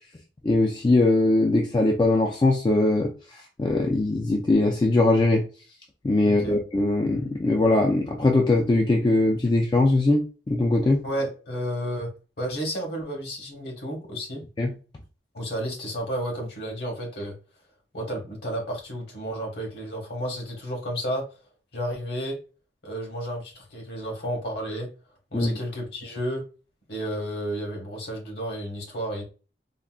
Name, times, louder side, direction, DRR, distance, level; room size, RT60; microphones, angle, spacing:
voice 1, 0.4-5.4 6.0-11.0 14.6-14.7 25.3-25.5, left 2 dB, 25° left, 1 dB, 0.3 m, -21 dB
voice 2, 6.2-6.6 11.0-14.5 15.3-17.4 17.9-21.3 21.7-22.4 22.8-24.9 25.3-26.4 26.9-29.2, equal, 65° left, 1 dB, 1.1 m, -32 dB
3.7 x 2.1 x 2.2 m, 0.34 s
head